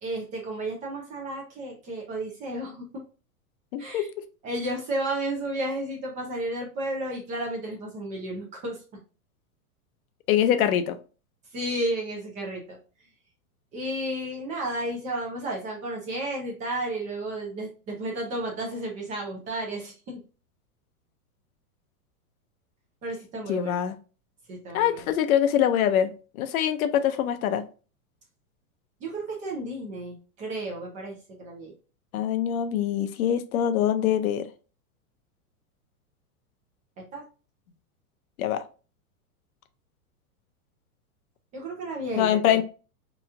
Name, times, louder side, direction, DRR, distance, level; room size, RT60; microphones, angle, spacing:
voice 1, 0.0-2.9 3.8-4.1 4.4-8.8 11.5-12.8 13.7-20.2 23.0-23.8 24.5-25.0 29.0-31.7 37.0-37.2 41.5-42.4, right 1 dB, 20° right, 0 dB, 0.4 m, -32 dB
voice 2, 3.7-4.2 10.3-11.0 23.5-24.0 24.7-27.6 32.1-34.5 38.4-38.6 42.2-42.6, left 10 dB, 70° left, 10 dB, 0.6 m, -24 dB
2.9 x 2.3 x 3.3 m, 0.35 s
hypercardioid pair, 130°, 44 cm